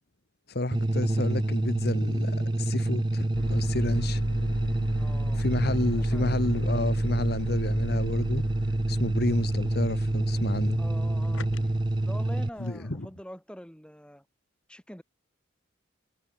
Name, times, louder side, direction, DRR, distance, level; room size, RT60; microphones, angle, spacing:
voice 1, 0.5-4.2 5.3-8.5 8.9-10.8 12.6-13.1, left 2 dB, 50° left, 1.4 m, -30 dB
sound 1, 0.7-12.5, right 1 dB, 20° right, 0.5 m, -27 dB
sound 2, 3.3-12.8, left 1 dB, 75° left, 1.9 m, -38 dB
voice 2, 4.9-6.3 10.8-14.2 14.7-15.0, equal, 5° left, 6.0 m, -45 dB
head